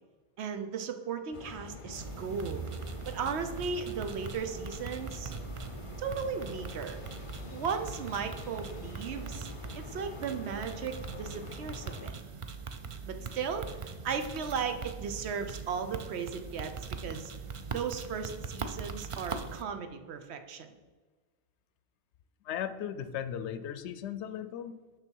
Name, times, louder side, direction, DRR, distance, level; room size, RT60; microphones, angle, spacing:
voice 1, 0.4-2.7 3.1-5.3 6.0-7.0 7.5-9.5 9.7-12.1 13.1-17.3 17.7-20.7, right 6 dB, 75° right, 8 dB, 0.9 m, -36 dB
sound 1, 1.3-12.1, left 3 dB, 40° left, 0.5 m, -46 dB
sound 2, 1.9-19.6, right 5 dB, 50° right, 0.4 m, -42 dB
voice 2, 22.4-25.0, left 9 dB, 85° left, 12 dB, 0.9 m, -37 dB
6.4 x 6.0 x 4.5 m, 1.4 s
omnidirectional pair, 1.1 m